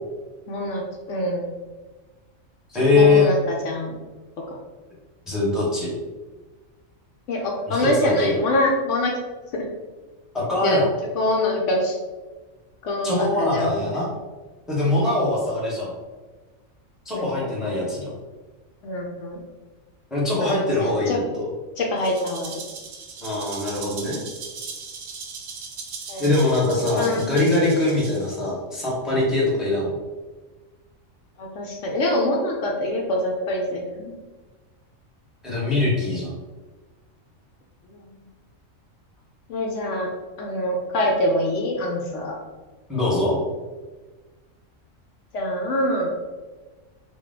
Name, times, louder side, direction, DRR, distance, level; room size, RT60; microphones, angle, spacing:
voice 1, 0.5-0.8 1.1-1.5 2.9-4.0 4.5-4.6 7.3-9.1 9.5-9.7 10.6-10.8 11.1-12.0 12.8-13.8 15.0-15.2 17.1-17.5 18.8-19.4 20.4-21.2 21.8-22.6 26.1-26.4 27.0-27.3 31.4-34.1 37.9-38.1 39.5-40.1 40.4-42.4 45.3-46.1, left 1 dB, 70° left, 0 dB, 0.9 m, -25 dB
voice 2, 2.7-3.3 5.3-5.9 7.7-8.3 10.3-10.9 13.0-14.1 14.7-15.9 17.0-18.1 20.1-21.1 21.4-21.5 23.2-24.2 26.2-29.9 35.4-36.3 42.9-43.4, left 2 dB, ahead, -7 dB, 0.8 m, -22 dB
Rattle (instrument), 22.0-28.5, right 4 dB, 65° right, 0.9 m, -38 dB
4.0 x 2.2 x 3.6 m, 1.3 s
omnidirectional pair, 1.4 m